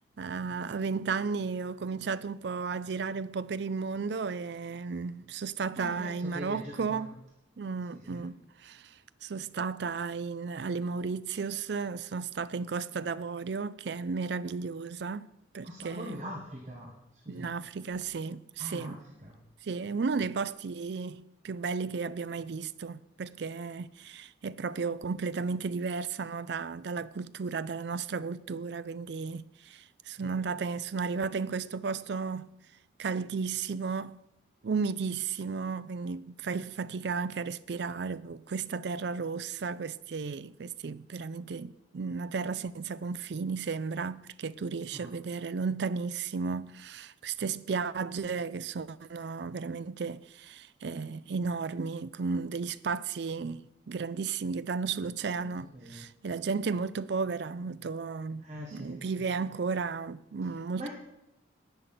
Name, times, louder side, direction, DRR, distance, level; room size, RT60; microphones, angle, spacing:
voice 1, 0.2-7.1 7.6-8.9 9.2-15.3 15.5-16.2 17.3-19.0 19.6-32.5 33.0-34.2 34.6-58.4 58.7-60.9, right 5 dB, 60° right, 0.4 m, -34 dB
voice 2, 5.8-7.1 7.9-8.3 15.6-16.9 17.2-17.5 18.6-19.0 19.2-19.4 30.2-30.3 44.9-45.1 55.3-55.5 55.7-56.0 58.4-59.0 60.8-60.9, equal, 35° right, 1.5 m, -42 dB
10.5 x 9.5 x 6.0 m
head